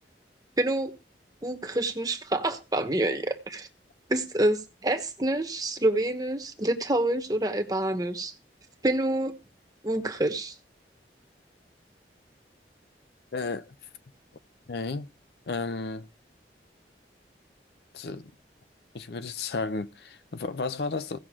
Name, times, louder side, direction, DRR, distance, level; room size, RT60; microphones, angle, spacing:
voice 1, 0.6-0.9 1.4-3.7 4.1-8.3 8.8-9.4 9.8-10.5, right 1 dB, 20° right, 1.1 m, -27 dB
voice 2, 13.3-13.7 14.7-15.1 15.5-16.1 17.9-18.3 18.9-21.2, left 3 dB, 65° left, 0.6 m, -33 dB
17.0 x 6.0 x 3.7 m
head